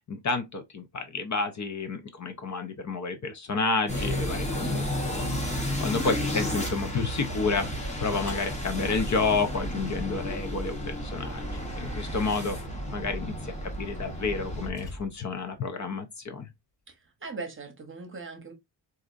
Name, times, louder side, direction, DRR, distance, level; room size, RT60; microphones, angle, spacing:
voice 1, 0.1-12.6 12.9-16.5, left 4 dB, 40° left, 0.5 m, -30 dB
sound 1, 3.9-14.7, equal, 15° left, 0.9 m, -32 dB
voice 2, 4.5-4.9 16.9-18.5, right 3 dB, 30° right, 0.8 m, -40 dB
sound 2, 8.3-10.4 12.3-12.4 13.3-13.5 13.9-15.4, left 2 dB, 55° left, 1.8 m, -44 dB
4.1 x 2.5 x 2.5 m
wide cardioid pair, 155°, 44 cm